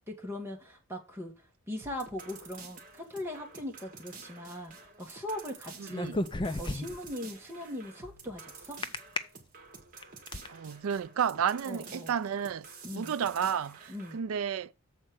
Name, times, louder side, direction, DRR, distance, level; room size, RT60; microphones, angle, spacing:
voice 1, 0.1-6.2 6.6-8.8 11.7-12.1 12.8-13.1 13.9-14.2, left 1 dB, 10° right, 1.7 m, -40 dB
sound 1, 1.8-14.2, right 4 dB, 35° right, 2.0 m, -50 dB
voice 2, 5.8-6.2 10.5-12.7 12.9-14.7, right 8 dB, 70° right, 0.4 m, -32 dB
sound 2, 5.9-7.1 8.8-9.2 9.8-10.5, left 2 dB, 20° left, 0.4 m, -32 dB
7.4 x 4.4 x 6.3 m
head